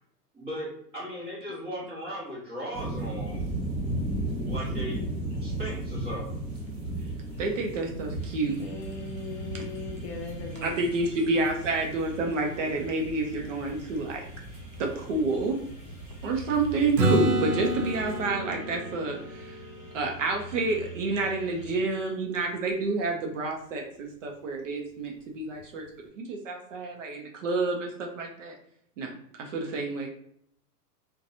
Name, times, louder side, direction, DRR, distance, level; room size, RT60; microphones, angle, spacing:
voice 1, 0.3-3.4 4.5-5.0 5.4-6.4, equal, 10° right, -9 dB, 0.9 m, -37 dB
sound 1, 2.7-18.3, right 1 dB, 35° right, 1.1 m, -36 dB
voice 2, 7.4-8.6 10.6-14.2 14.8-15.6 16.2-19.6 19.9-25.9 26.2-28.5 29.0-29.1 29.4-30.1, right 3 dB, 50° right, 1 dB, 0.5 m, -29 dB
sound 2, 8.2-21.8, right 1 dB, 25° left, 0.8 m, -45 dB
voice 3, 8.6-10.8, left 3 dB, 50° left, 2 dB, 0.5 m, -39 dB
Acoustic guitar / Strum, 17.0-20.7 25.6-25.7, right 1 dB, 90° right, 0.8 m, -29 dB
2.7 x 2.2 x 2.6 m, 0.70 s
hypercardioid pair, 155°, 48 cm